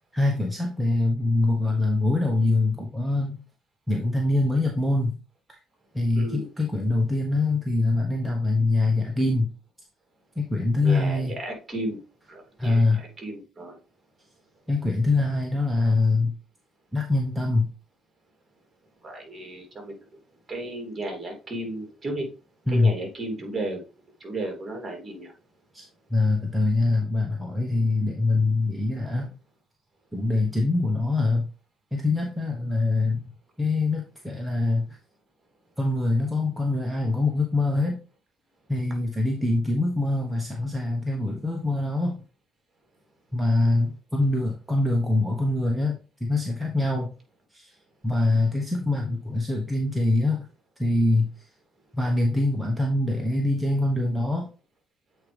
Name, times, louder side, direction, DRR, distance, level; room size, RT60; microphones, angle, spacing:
voice 1, 0.1-3.4 3.9-5.2 5.9-9.5 10.4-11.4 12.6-13.0 14.7-16.3 16.9-17.7 22.7-22.9 25.7-29.3 30.1-31.5 31.9-33.2 33.6-34.8 35.8-38.0 38.7-42.2 43.3-47.1 47.5-47.7 48.0-50.4 50.8-51.3 51.9-54.5, left 2 dB, 5° right, 0 dB, 1.2 m, -24 dB
voice 2, 6.1-6.5 10.8-12.0 12.3-13.8 19.0-20.0 20.5-22.3 22.7-23.8 24.2-25.3, right 1 dB, 25° right, 2 dB, 3.0 m, -34 dB
8.1 x 4.6 x 3.4 m, 0.34 s
cardioid pair, 90°, 0 cm